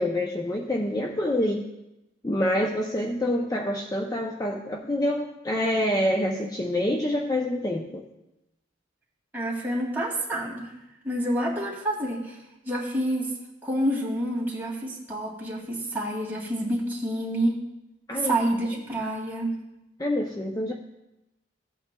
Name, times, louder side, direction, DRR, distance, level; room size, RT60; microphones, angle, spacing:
voice 1, 0.0-1.7 2.2-8.0 18.1-18.4 20.0-20.7, left 1 dB, 20° left, 1 dB, 0.5 m, -26 dB
voice 2, 9.3-10.7 11.0-12.4 12.7-13.3 13.6-17.6 18.1-19.6, right 1 dB, 10° right, -4 dB, 2.3 m, -28 dB
15.5 x 8.5 x 2.3 m, 0.92 s
head